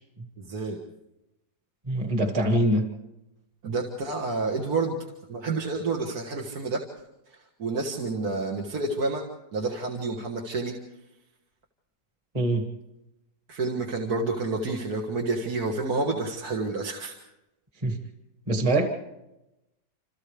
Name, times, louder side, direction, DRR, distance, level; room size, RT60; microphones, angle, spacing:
voice 1, 0.4-0.8 3.6-5.0 5.3-6.8 7.3-9.2 9.5-10.7 13.5-17.2, right 3 dB, 55° right, 0 dB, 2.1 m, -29 dB
voice 2, 1.9-2.9 12.3-12.7 17.8-18.0 18.5-18.9, right 1 dB, 20° right, 4 dB, 1.8 m, -23 dB
27.5 x 27.5 x 3.4 m, 0.94 s
omnidirectional pair, 2.0 m